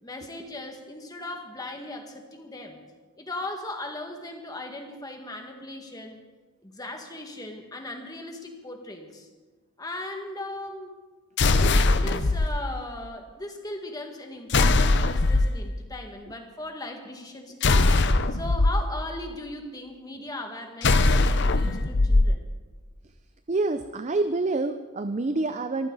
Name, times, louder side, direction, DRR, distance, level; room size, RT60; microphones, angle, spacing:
voice 1, 0.0-2.8 3.2-6.2 6.6-9.3 9.8-11.0 11.5-17.9 18.3-22.5, left 2 dB, 20° left, 3 dB, 1.9 m, -38 dB
sound 1, 11.4-12.5 14.5-15.5 17.6-18.7 20.8-22.3, left 2 dB, 55° left, 0.8 m, -20 dB
voice 2, 23.5-25.9, right 3 dB, 35° right, 10 dB, 0.5 m, -27 dB
23.5 x 14.5 x 4.0 m, 1.3 s
head